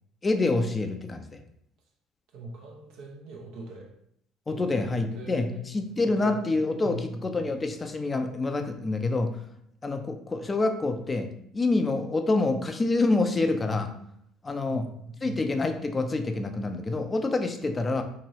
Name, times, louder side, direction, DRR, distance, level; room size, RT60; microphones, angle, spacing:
voice 1, 0.2-1.4 4.5-9.3 9.8-14.0 14.4-14.9 15.2-18.0, left 3 dB, 25° left, 7 dB, 0.4 m, -27 dB
voice 2, 2.3-3.9 4.5-5.7 6.0-6.4 6.7-7.5 14.5-15.4, right 2 dB, 70° right, 1 dB, 0.5 m, -41 dB
2.9 x 2.6 x 2.9 m, 0.71 s
hypercardioid pair, 70°, 0 cm